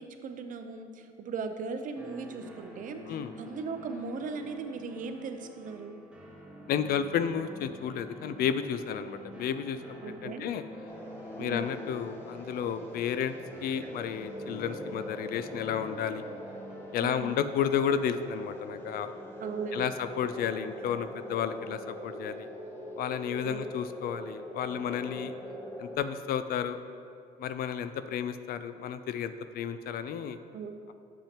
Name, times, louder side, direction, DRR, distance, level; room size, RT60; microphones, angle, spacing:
voice 1, 0.0-6.0 10.0-10.5 11.4-11.7 17.0-17.4 19.4-19.9 23.4-23.7 30.5-30.9, right 4 dB, 50° right, 7 dB, 0.6 m, -38 dB
sound 1, 2.0-18.7, right 1 dB, 5° right, 1.2 m, -47 dB
voice 2, 6.7-10.6 11.4-13.3 13.6-16.2 16.9-19.1 19.7-22.5 23.0-25.3 25.8-26.8 27.4-30.4, left 8 dB, 65° left, 11 dB, 0.4 m, -32 dB
sound 2, 10.9-26.0, equal, 15° left, 0.9 m, -43 dB
8.7 x 7.3 x 2.9 m, 2.4 s
cardioid pair, 110°, 17 cm